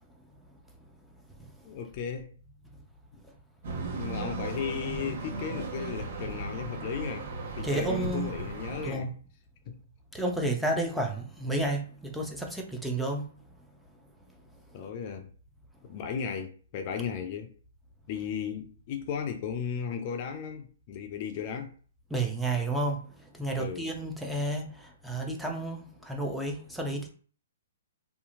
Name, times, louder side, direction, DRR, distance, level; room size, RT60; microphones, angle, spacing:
voice 1, 1.6-2.3 4.0-7.3 7.6-9.1 9.7-9.8 14.7-15.3 15.9-17.5 18.1-21.7 23.6-23.9, left 7 dB, 45° left, 0.4 m, -35 dB
sound 1, 3.6-8.9, right 3 dB, 60° right, 1.1 m, -36 dB
voice 2, 7.6-8.3 8.8-9.1 10.1-13.3 22.1-23.0 23.4-24.7 25.0-27.1, right 2 dB, ahead, 0.6 m, -31 dB
2.7 x 2.4 x 2.5 m
hypercardioid pair, 130°, 0 cm